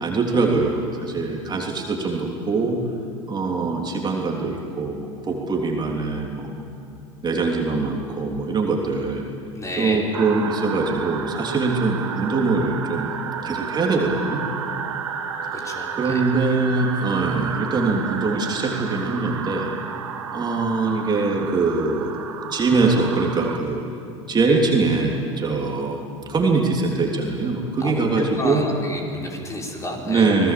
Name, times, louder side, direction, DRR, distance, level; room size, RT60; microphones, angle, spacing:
voice 1, 0.0-2.8 3.3-6.6 7.2-9.2 9.8-13.1 13.4-14.4 15.4-19.7 20.3-22.2 22.5-23.8 24.3-26.0 26.3-28.6 30.0-30.5, right 3 dB, 30° right, 0 dB, 3.4 m, -23 dB
voice 2, 9.6-10.0 15.5-16.3 27.8-30.3, left 1 dB, 20° left, -1 dB, 5.3 m, -30 dB
sound 1, 10.1-23.6, right 7 dB, 85° right, 1.5 m, -32 dB
26.5 x 19.5 x 7.7 m, 2.4 s
hypercardioid pair, 75°, 16 cm